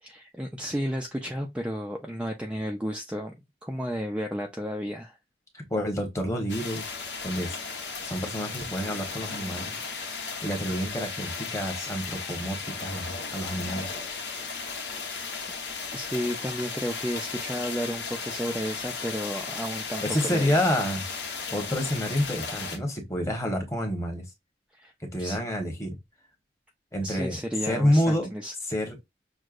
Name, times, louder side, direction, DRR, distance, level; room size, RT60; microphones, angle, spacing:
voice 1, 0.0-3.3 3.6-5.2 15.9-20.5 24.7-24.9 25.2-25.4 27.0-28.5, equal, 5° right, 0.4 m, -32 dB
voice 2, 5.5-6.9 7.2-7.6 8.0-9.7 10.4-13.9 20.0-21.0 21.5-24.2 25.1-26.0 26.9-27.4 27.6-28.3 28.7-29.0, equal, 15° left, 1.1 m, -28 dB
sound 1, 6.5-22.8, left 4 dB, 80° left, 1.1 m, -35 dB
6.3 x 2.2 x 2.5 m
head